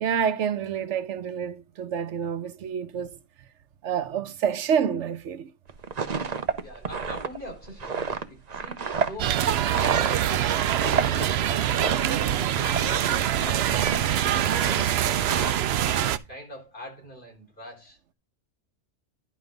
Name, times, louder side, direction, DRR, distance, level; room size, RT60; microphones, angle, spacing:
voice 1, 0.0-3.2 3.8-5.5, right 7 dB, 85° right, 1.1 m, -28 dB
sound 1, 5.7-13.2 13.4-14.0 14.3-15.5, right 5 dB, 40° right, 0.9 m, -30 dB
voice 2, 6.6-10.6 10.8-11.8 12.2-18.0, equal, 45° left, 4.5 m, -44 dB
sound 2, 9.2-16.2, right 11 dB, 65° right, 0.8 m, -24 dB
10.5 x 5.3 x 3.8 m
omnidirectional pair, 1.2 m